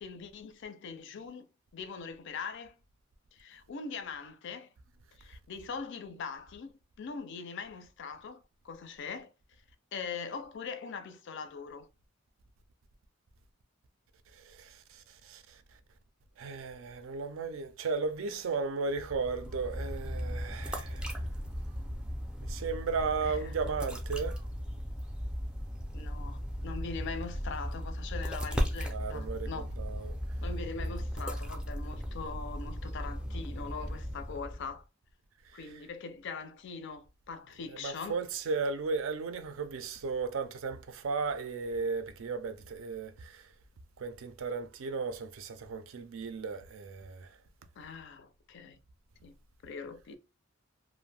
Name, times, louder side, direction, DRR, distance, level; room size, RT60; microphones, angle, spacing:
voice 1, 0.0-2.8 3.3-4.7 5.2-9.3 9.9-11.9 23.2-23.5 25.9-29.7 30.4-34.8 35.5-38.2 47.8-48.8 49.2-49.4 49.6-50.2, left 5 dB, 60° left, 0.4 m, -42 dB
voice 2, 14.5-14.8 15.2-15.4 16.4-21.2 22.4-24.4 28.9-30.2 37.8-43.4 44.0-47.3, right 4 dB, 70° right, 0.4 m, -35 dB
sound 1, 18.9-34.8, equal, 5° right, 0.4 m, -37 dB
2.4 x 2.1 x 3.2 m
head